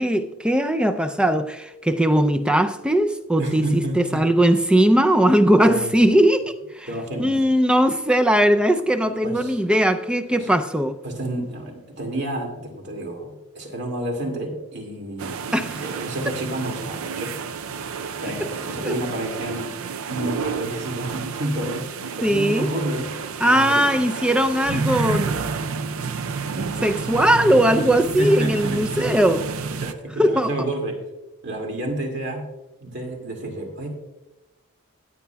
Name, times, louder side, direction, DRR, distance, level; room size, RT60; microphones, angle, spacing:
voice 1, 0.0-6.9 7.2-11.0 15.5-15.8 18.4-18.5 18.8-19.0 22.2-22.7 23.4-25.5 26.1-29.5 30.2-30.5, right 1 dB, 5° right, 0.4 m, -19 dB
voice 2, 3.4-4.2 5.6-5.9 6.9-7.4 9.2-9.5 10.3-10.5 11.0-15.4 15.8-17.3 18.2-19.8 20.1-21.9 22.2-23.9 28.2-29.1 29.8-31.0 31.4-32.5 32.8-33.9, right 1 dB, 55° right, 2.3 m, -29 dB
sound 1, 15.2-29.9, right 5 dB, 75° right, 0.5 m, -30 dB
16.0 x 9.8 x 2.3 m
head